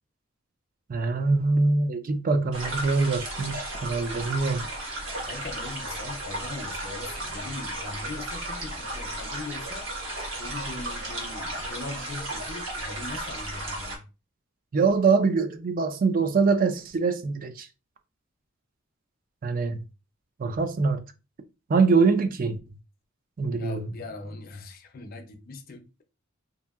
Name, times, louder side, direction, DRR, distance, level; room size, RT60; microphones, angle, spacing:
voice 1, 0.9-4.7 14.7-17.7 19.4-19.8 20.4-21.0 21.7-22.6 23.4-23.9, right 4 dB, 45° right, 0.4 m, -24 dB
sound 1, 2.5-14.0, right 1 dB, 70° right, 1.1 m, -34 dB
voice 2, 5.1-9.9 10.4-14.0 23.6-25.9, left 3 dB, 45° left, 0.5 m, -40 dB
2.7 x 2.7 x 2.3 m
head